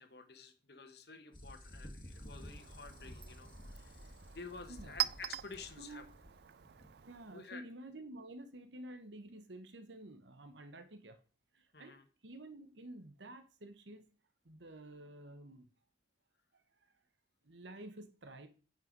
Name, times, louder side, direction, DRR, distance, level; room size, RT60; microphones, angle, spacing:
voice 1, 0.0-6.0 7.3-7.6 11.7-12.0, left 4 dB, 65° left, 8 dB, 1.3 m, -51 dB
sound 1, 1.3-7.2, left 1 dB, 25° left, 1.8 m, -53 dB
Chink clink, 2.1-7.6, right 13 dB, 65° right, 0.3 m, -44 dB
voice 2, 4.0-4.4 4.7-5.0 5.8-6.1 7.1-11.2 11.5-12.0 12.2-14.1 14.4-15.7 16.5-16.6 17.4-18.5, right 1 dB, 85° right, 9 dB, 1.2 m, -51 dB
9.2 x 5.8 x 5.2 m, 0.37 s
head